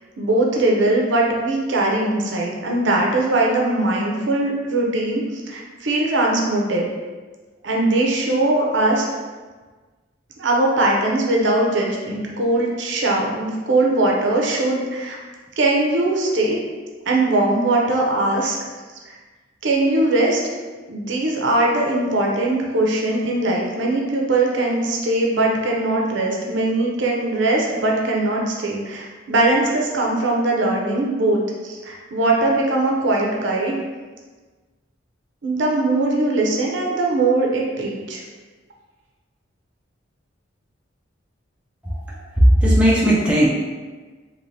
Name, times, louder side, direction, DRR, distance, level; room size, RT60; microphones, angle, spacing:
voice 1, 0.2-6.9 7.6-9.1 10.4-15.2 15.6-16.6 17.1-18.6 19.1-19.2 19.6-20.4 20.9-33.8 35.4-38.2, right 2 dB, 70° right, -1 dB, 0.6 m, -20 dB
voice 2, 41.8-43.5, equal, 5° right, -6 dB, 0.5 m, -16 dB
3.2 x 2.9 x 2.7 m, 1.4 s
head